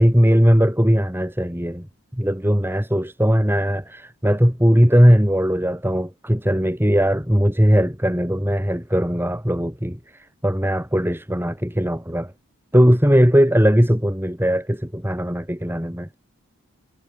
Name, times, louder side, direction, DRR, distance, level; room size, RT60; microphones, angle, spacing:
voice 1, 0.0-1.9 2.1-12.3 12.7-16.1, equal, 10° right, 4.6 m, -19 dB
head